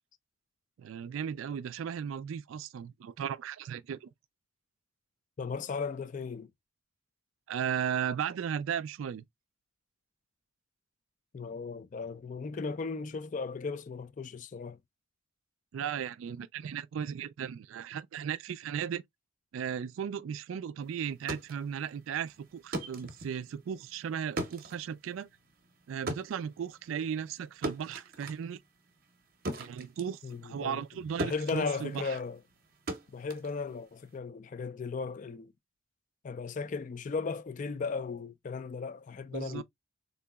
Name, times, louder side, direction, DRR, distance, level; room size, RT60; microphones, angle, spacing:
voice 1, 0.8-4.1 7.5-9.2 15.7-19.0 19.5-25.3 25.9-28.6 29.6-32.1 39.3-39.6, right 8 dB, 80° right, 0.3 m, -36 dB
voice 2, 5.4-6.5 11.3-14.8 30.2-30.8 31.2-32.4 33.1-35.5 36.2-39.6, left 4 dB, 40° left, 0.3 m, -36 dB
sound 1, 21.0-30.9 31.2-34.2, right 1 dB, 45° right, 0.7 m, -40 dB
3.8 x 2.7 x 2.2 m
head